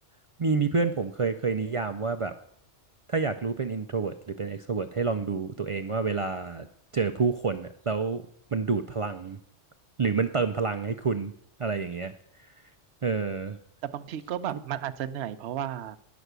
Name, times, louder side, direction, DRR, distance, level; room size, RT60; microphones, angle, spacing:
voice 1, 0.4-2.3 3.1-6.7 6.9-8.3 8.5-9.4 10.0-11.3 11.6-12.1 13.0-13.6 14.5-14.6, right 4 dB, 50° right, 6 dB, 0.4 m, -28 dB
voice 2, 13.8-16.0, right 10 dB, 70° right, 10 dB, 0.9 m, -33 dB
10.0 x 6.1 x 8.0 m, 0.68 s
omnidirectional pair, 1.2 m